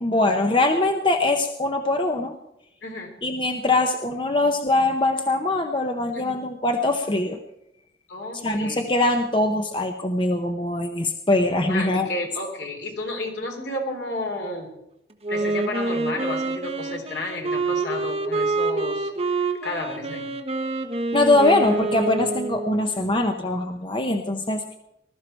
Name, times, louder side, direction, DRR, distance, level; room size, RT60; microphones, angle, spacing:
voice 1, 0.0-2.3 3.2-7.4 8.3-12.1 21.1-24.8, left 2 dB, 25° left, 5 dB, 0.8 m, -22 dB
voice 2, 2.8-3.1 6.1-6.4 8.1-9.0 11.7-14.7 15.3-20.3, left 2 dB, 70° left, 1 dB, 3.7 m, -32 dB
Wind instrument woodwind instrument, 15.2-23.0, right 3 dB, 35° right, 1.3 m, -27 dB
20.0 x 13.0 x 4.5 m, 0.83 s
head